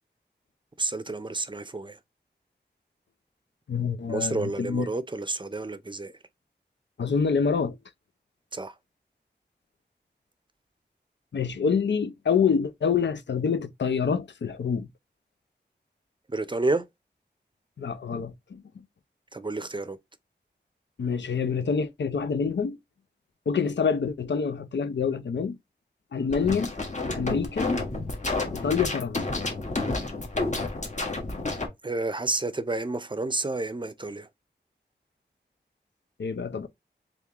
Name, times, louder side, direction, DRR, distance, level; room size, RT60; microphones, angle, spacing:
voice 1, 0.8-2.0 4.1-6.1 8.5-8.8 16.3-16.9 19.3-20.0 31.8-34.3, right 2 dB, 25° right, 0.5 m, -30 dB
voice 2, 3.7-4.9 7.0-7.8 11.3-14.9 17.8-18.8 21.0-22.8 23.5-25.6 26.1-26.7 27.1-27.7 28.5-29.2 36.2-36.7, left 6 dB, 90° left, 0.5 m, -26 dB
sound 1, 26.3-31.7, left 2 dB, 40° left, 1.3 m, -30 dB
3.7 x 3.5 x 2.9 m
wide cardioid pair, 70°, 18 cm